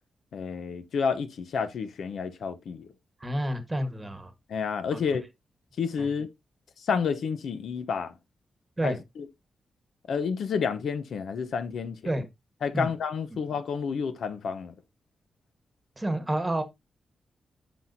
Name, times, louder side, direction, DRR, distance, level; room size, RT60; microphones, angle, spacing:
voice 1, 0.3-2.9 4.5-5.3 5.8-6.3 6.8-8.1 8.8-9.3 10.1-12.1 12.6-14.7, left 6 dB, 75° left, 0.8 m, -30 dB
voice 2, 3.2-4.3 4.9-5.0 6.0-6.1 8.8-9.0 12.0-12.2 12.7-12.9 16.0-16.6, right 1 dB, 15° right, 1.3 m, -29 dB
10.0 x 6.1 x 2.7 m
wide cardioid pair, 145°, 0 cm